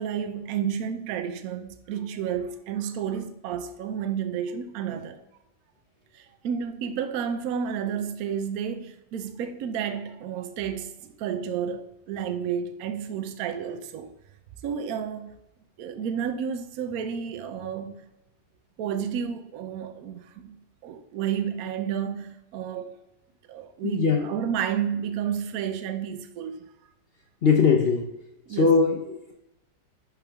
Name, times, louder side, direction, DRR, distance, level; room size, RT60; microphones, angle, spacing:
voice 1, 0.0-5.2 6.1-14.1 14.6-15.3 15.8-18.0 18.8-23.0 23.5-26.6 28.5-28.8, right 8 dB, 65° right, 1.0 m, -31 dB
voice 2, 23.8-24.3 27.4-28.1 28.5-29.3, left 5 dB, 60° left, 0.6 m, -21 dB
10.5 x 3.6 x 3.4 m
omnidirectional pair, 1.9 m